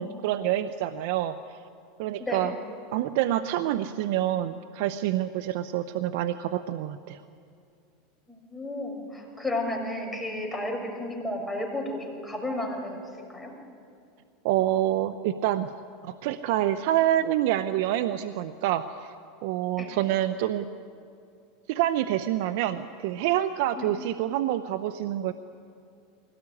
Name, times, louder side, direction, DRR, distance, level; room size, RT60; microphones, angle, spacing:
voice 1, 0.0-1.3 2.0-2.5 2.9-7.2 14.4-15.7 16.0-19.1 19.4-20.7 21.7-25.3, right 12 dB, 70° right, 11 dB, 0.8 m, -27 dB
voice 2, 2.2-2.6 8.3-13.0 13.3-13.5 19.8-19.9 23.8-23.9, left 1 dB, 10° left, 1 dB, 6.2 m, -32 dB
23.0 x 18.5 x 9.8 m, 2.5 s
hypercardioid pair, 105°, 0 cm